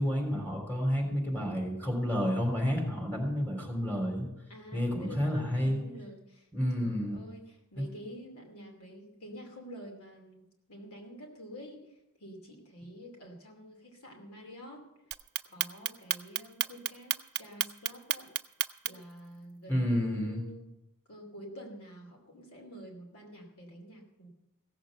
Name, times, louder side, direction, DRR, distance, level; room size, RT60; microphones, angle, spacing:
voice 1, 0.0-4.3 4.7-5.8 6.5-7.2 7.8-7.9 19.7-20.4, equal, 10° left, 1 dB, 3.6 m, -30 dB
voice 2, 4.5-6.5 6.7-10.4 10.7-11.9 12.2-14.8 15.4-18.3 18.8-20.7 21.1-24.3, equal, 75° left, 1 dB, 2.7 m, -48 dB
Clock, 15.1-19.1, right 14 dB, 50° right, 0.5 m, -31 dB
16.0 x 7.4 x 8.0 m, 0.89 s
head